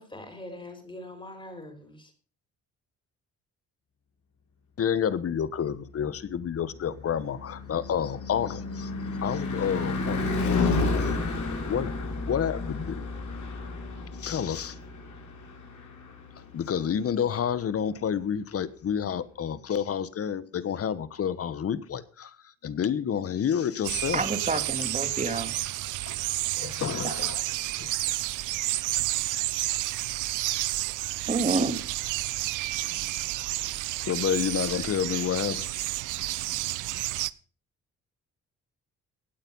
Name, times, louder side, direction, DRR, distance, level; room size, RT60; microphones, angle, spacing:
voice 1, 0.0-2.1, left 1 dB, 15° left, 7 dB, 5.1 m, -43 dB
voice 2, 4.8-8.9 9.2-10.7 11.6-13.0 14.2-14.8 16.4-22.4 22.6-24.2 24.5-24.7 25.0-25.2 26.1-27.5 27.7-27.9 34.0-35.7, left 8 dB, 50° left, 16 dB, 1.3 m, -29 dB
Car passing by / Truck / Engine, 6.4-16.7, left 3 dB, 70° left, 5.4 m, -31 dB
sound 1, 23.8-37.3, right 17 dB, 85° right, 0.6 m, -30 dB
voice 3, 24.1-25.5 27.0-27.1 31.3-31.8, right 3 dB, 25° right, 9 dB, 2.3 m, -28 dB
17.0 x 9.1 x 5.5 m, 0.39 s
cardioid pair, 90°, 30 cm